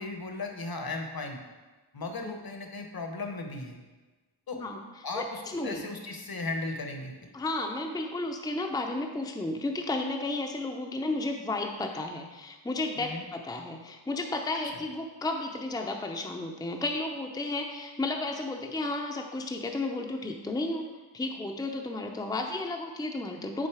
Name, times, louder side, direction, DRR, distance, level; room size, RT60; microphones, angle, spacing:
voice 1, 0.0-1.4 1.9-3.8 4.5-4.6 5.0-7.1 13.0-13.2, left 3 dB, 55° left, 3 dB, 0.9 m, -36 dB
voice 2, 5.1-5.8 7.3-20.9 21.1-23.7, left 2 dB, 10° left, 2 dB, 0.5 m, -33 dB
6.4 x 3.8 x 4.7 m, 1.2 s
wide cardioid pair, 70°, 44 cm